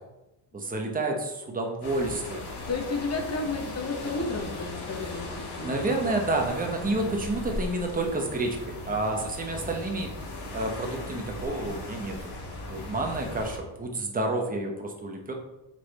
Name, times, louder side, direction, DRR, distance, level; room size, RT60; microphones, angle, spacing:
voice 1, 0.5-2.4 5.6-10.1 10.5-12.3 12.6-15.3, right 2 dB, 20° right, 2 dB, 1.0 m, -29 dB
sound 1, 1.8-13.6, left 2 dB, 65° left, 1.6 m, -38 dB
voice 2, 2.7-5.7 6.7-7.2, left 3 dB, 35° left, 3 dB, 1.1 m, -32 dB
6.3 x 4.0 x 4.1 m, 0.95 s
cardioid pair, 145°, 42 cm